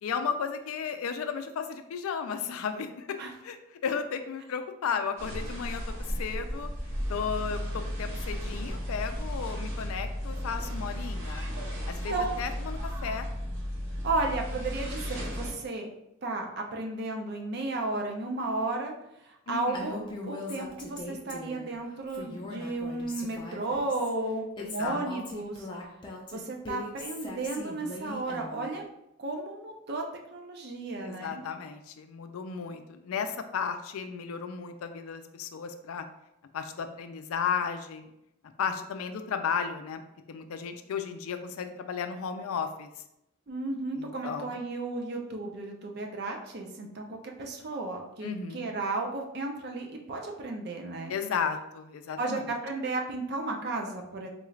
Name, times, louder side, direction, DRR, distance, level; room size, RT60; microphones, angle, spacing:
voice 1, 0.0-3.2 3.4-3.6 3.8-5.8 6.2-6.7 7.1-11.5 11.9-13.3 19.5-20.0 24.6-25.0 31.0-36.0 36.5-38.1 38.6-40.0 40.3-42.9 44.0-44.6 48.2-48.7 51.1-52.5, left 6 dB, 80° left, 8 dB, 0.4 m, -34 dB
sound 1, 5.2-15.5, equal, 70° right, 1.2 m, -34 dB
voice 2, 14.0-15.9 16.2-18.9 19.2-25.7 26.3-28.8 29.2-30.0 30.3-31.4 43.5-51.1 52.2-54.3, right 2 dB, 50° right, 2 dB, 0.5 m, -33 dB
Female speech woman speaking, 19.7-21.7 22.1-24.1 24.6-28.7, left 2 dB, 20° left, 0.5 m, -40 dB
3.8 x 2.4 x 3.1 m, 0.83 s
head